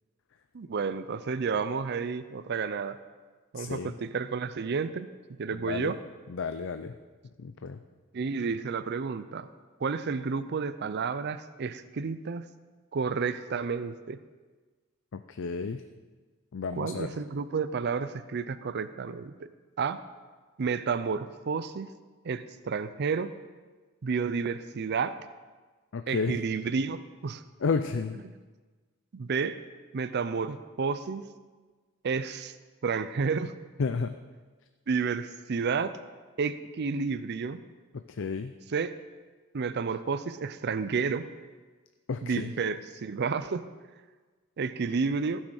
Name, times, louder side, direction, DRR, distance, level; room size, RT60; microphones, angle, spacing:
voice 1, 0.5-3.0 3.5-5.1 5.4-6.0 8.1-9.5 9.8-12.5 12.9-14.2 16.7-19.5 19.8-20.0 20.6-21.9 22.2-23.3 24.0-25.1 26.1-27.4 28.2-28.3 29.1-29.6 29.9-31.3 32.0-32.5 32.8-33.5 34.9-35.9 36.4-37.6 38.7-38.9 39.5-41.3 42.2-43.6 44.6-45.4, right 5 dB, 55° right, 12 dB, 0.5 m, -31 dB
voice 2, 3.5-3.9 5.5-5.9 6.3-6.9 7.4-7.8 15.1-15.8 16.5-17.1 25.9-26.4 27.6-28.2 33.8-34.2 38.1-38.5 42.1-42.5, left 4 dB, 65° left, 9 dB, 0.5 m, -32 dB
15.0 x 6.4 x 6.4 m, 1.4 s
head